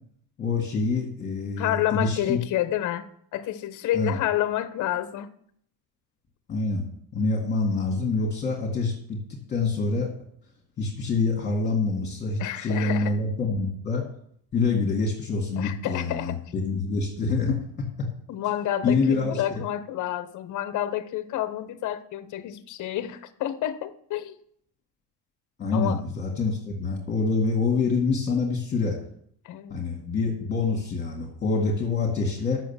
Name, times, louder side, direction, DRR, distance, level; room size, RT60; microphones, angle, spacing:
voice 1, 0.4-2.4 3.9-4.1 6.5-6.8 7.1-9.2 9.5-10.1 10.8-14.0 14.5-18.1 18.8-19.6 25.6-29.0 29.7-32.6, left 4 dB, 25° left, -2 dB, 2.0 m, -26 dB
voice 2, 1.6-5.3 12.4-13.1 15.6-16.4 18.3-24.3 25.7-26.0 29.4-29.8, left 12 dB, 45° left, 13 dB, 0.9 m, -29 dB
7.7 x 6.3 x 7.2 m, 0.64 s
cardioid pair, 140°, 41 cm